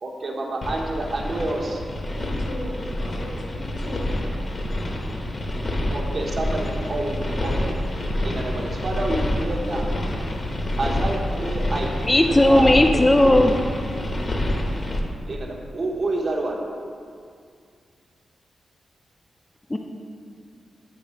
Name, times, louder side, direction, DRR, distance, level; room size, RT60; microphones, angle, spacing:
voice 1, 0.0-1.8 5.9-10.0 10.4-13.6 15.3-16.7, right 2 dB, 55° right, -1 dB, 1.0 m, -29 dB
sound 1, 0.6-15.0, left 1 dB, 40° left, 0.8 m, -27 dB
voice 2, 2.1-4.3, left 1 dB, 85° left, -3 dB, 1.5 m, -37 dB
voice 3, 12.1-13.5 19.7-19.8, left 1 dB, 15° left, 3 dB, 0.4 m, -16 dB
8.6 x 3.2 x 5.0 m, 2.3 s
cardioid pair, 95°, 0 cm